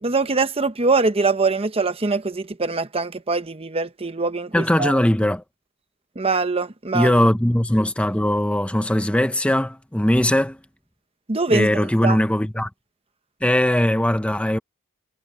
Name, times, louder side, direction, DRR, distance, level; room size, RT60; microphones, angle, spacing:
voice 1, 0.0-4.9 6.2-7.1 11.3-11.7 12.0-12.2, right 3 dB, 25° right, 0.9 m, -23 dB
voice 2, 4.5-5.4 6.9-10.6 11.5-12.7 13.4-14.6, left 1 dB, 5° left, 0.7 m, -20 dB
head